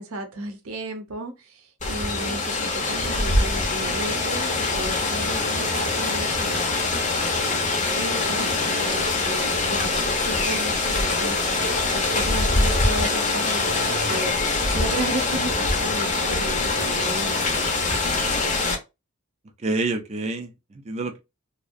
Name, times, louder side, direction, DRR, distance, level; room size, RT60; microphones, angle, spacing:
voice 1, 0.0-7.6 7.9-14.4 14.7-18.0, right 1 dB, 75° right, 0.7 m, -34 dB
Rain, 1.8-18.8, left 3 dB, 35° left, 0.6 m, -24 dB
voice 2, 19.6-21.2, right 2 dB, 30° right, 0.4 m, -28 dB
2.6 x 2.1 x 2.4 m
head